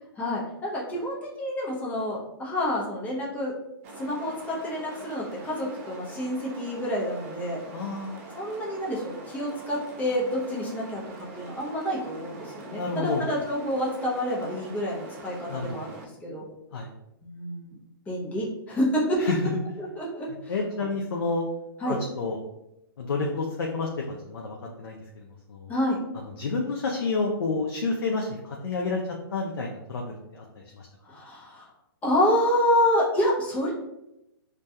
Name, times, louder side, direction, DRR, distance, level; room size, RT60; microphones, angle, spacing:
voice 1, 0.2-3.5 4.0-7.6 8.3-11.0 11.3-16.5 17.2-17.8 18.1-19.2 19.8-20.6 21.8-22.0 25.7-26.0 31.1-31.7 32.0-33.7, left 1 dB, 10° left, -5 dB, 0.5 m, -28 dB
Fan Noisy Air, 3.8-16.1, right 2 dB, 35° right, 0.3 m, -43 dB
voice 2, 7.7-8.2 12.7-13.3 15.5-15.8 16.7-16.9 19.2-19.6 20.5-21.5 21.9-22.4 23.0-23.9 24.3-25.2 25.5-25.7 26.4-29.0 29.3-30.9, left 3 dB, 85° left, 0 dB, 0.4 m, -29 dB
2.3 x 2.2 x 2.7 m, 0.88 s
hypercardioid pair, 145°, 12 cm